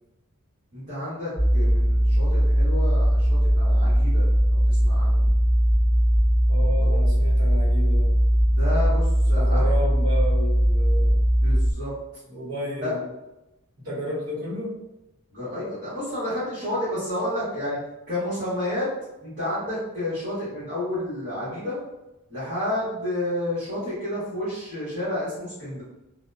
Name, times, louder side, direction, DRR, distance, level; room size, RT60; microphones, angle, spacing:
voice 1, 0.7-5.3 6.8-6.9 8.6-9.7 11.4-11.9 12.8-12.9 15.3-17.8 18.1-18.9 19.2-21.8 22.3-25.8, left 1 dB, 40° right, -12 dB, 1.1 m, -30 dB
sound 1, 1.4-11.7, equal, 15° right, 0.9 m, -20 dB
voice 2, 6.5-8.2 9.3-11.3 12.3-13.0 13.8-14.8, left 1 dB, 70° right, -7 dB, 1.0 m, -32 dB
2.6 x 2.2 x 2.2 m, 0.94 s
head